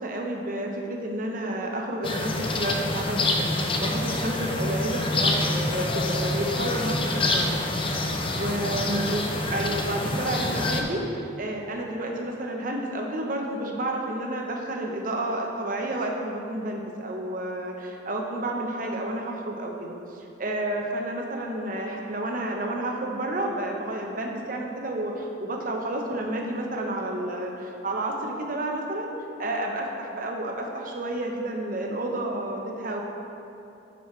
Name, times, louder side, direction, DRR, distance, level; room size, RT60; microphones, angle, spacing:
voice 1, 0.0-7.6 8.0-11.0 11.4-29.1 29.4-33.0, right 1 dB, 50° right, 1 dB, 0.9 m, -30 dB
sound 1, 2.0-10.8, left 2 dB, 30° left, 0.6 m, -27 dB
11.5 x 5.6 x 3.2 m, 2.8 s
head